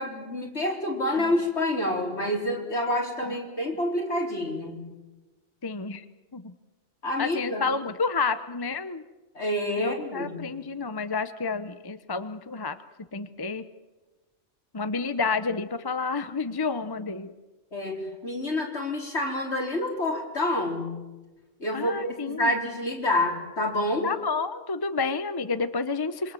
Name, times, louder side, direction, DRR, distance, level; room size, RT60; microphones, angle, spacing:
voice 1, 0.0-4.8 7.0-7.6 9.3-10.5 17.7-20.9 21.6-24.1, left 1 dB, 65° left, 0 dB, 4.8 m, -28 dB
voice 2, 5.6-6.0 6.3-6.5 7.2-9.0 9.8-12.8 13.1-13.6 14.7-17.3 21.7-22.5 24.0-26.3, left 4 dB, 20° left, 11 dB, 0.8 m, -30 dB
26.5 x 24.0 x 7.7 m, 1.2 s
omnidirectional pair, 1.2 m